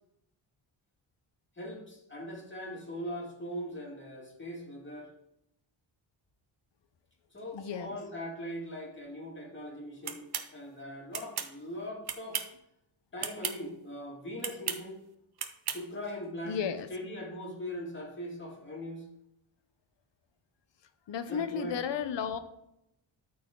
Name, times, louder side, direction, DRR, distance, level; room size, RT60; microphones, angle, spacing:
voice 1, 1.6-5.1 7.3-12.4 13.1-15.0 15.7-16.6 16.9-19.0 21.3-21.8, equal, 25° left, -2 dB, 2.5 m, -40 dB
voice 2, 7.5-8.0 16.4-16.9 21.1-22.4, left 7 dB, 65° left, 10 dB, 0.9 m, -33 dB
sound 1, 10.1-10.5 11.1-11.5 12.1-12.6 13.2-13.6 14.4-14.8 15.4-15.8, right 8 dB, 55° right, 0.8 m, -35 dB
13.0 x 4.4 x 3.9 m, 0.81 s
wide cardioid pair, 125°, 47 cm